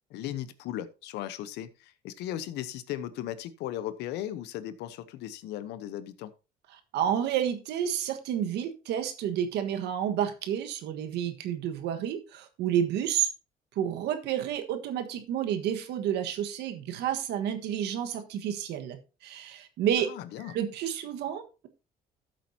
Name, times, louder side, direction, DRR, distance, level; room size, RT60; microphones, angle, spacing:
voice 1, 0.1-6.3 20.1-20.6, left 12 dB, 85° left, 14 dB, 0.9 m, -37 dB
voice 2, 6.9-13.3 13.7-20.1 20.5-21.7, right 9 dB, 80° right, 8 dB, 1.5 m, -30 dB
13.0 x 7.5 x 2.8 m, 0.31 s
cardioid pair, 110°, 17 cm